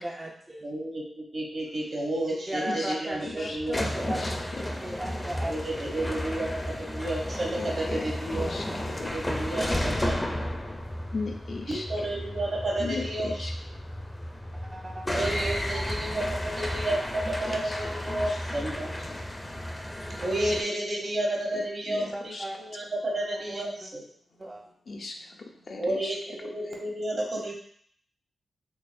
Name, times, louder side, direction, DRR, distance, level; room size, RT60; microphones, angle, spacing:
voice 1, 0.0-0.7 2.5-5.8 14.7-15.9 17.4-17.6 18.1-18.2 20.1-20.2 22.1-22.5 23.3-23.9 24.4-24.6, right 1 dB, 30° right, -2 dB, 0.5 m, -37 dB
voice 2, 0.6-3.8 5.5-8.5 9.0-10.2 11.7-13.3 15.1-18.9 20.2-24.0 25.8-27.5, right 1 dB, 55° right, -1 dB, 1.1 m, -31 dB
sound 1, 3.1-20.6, left 1 dB, 15° left, 0.6 m, -33 dB
voice 3, 3.2-4.6 5.0-5.1 5.4-5.5 7.6-9.4 11.1-12.1 12.8-13.5 17.4-18.7 19.0-19.1 21.5-22.5 24.9-25.3 25.6-26.1, left 3 dB, 60° left, 2 dB, 0.6 m, -38 dB
3.9 x 3.1 x 2.6 m, 0.63 s
cardioid pair, 50°, 0 cm